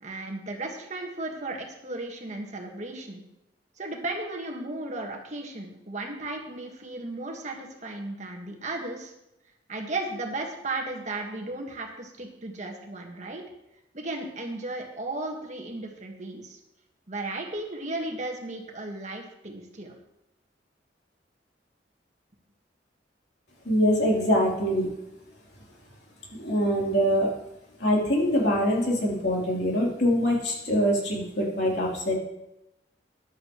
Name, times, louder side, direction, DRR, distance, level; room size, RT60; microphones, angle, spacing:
voice 1, 0.0-3.2 3.8-9.1 9.7-13.4 13.9-16.6 17.1-20.0, right 2 dB, 40° right, 1 dB, 1.7 m, -35 dB
voice 2, 23.7-24.9 26.3-27.3 27.8-32.2, equal, 65° left, -4 dB, 3.5 m, -24 dB
14.0 x 11.0 x 3.1 m, 0.90 s
head